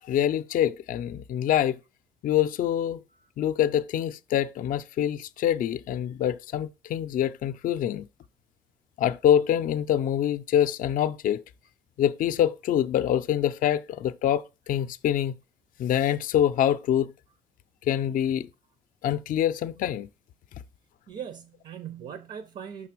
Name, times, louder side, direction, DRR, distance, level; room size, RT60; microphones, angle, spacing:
voice 1, 0.1-1.8 2.2-3.0 3.4-8.1 9.0-11.4 12.0-15.4 15.8-17.1 17.8-18.5 19.0-20.1, left 10 dB, 55° left, 0.5 m, -25 dB
voice 2, 21.1-22.9, right 8 dB, 50° right, 0.7 m, -40 dB
5.8 x 3.7 x 6.0 m
cardioid pair, 110°, 17 cm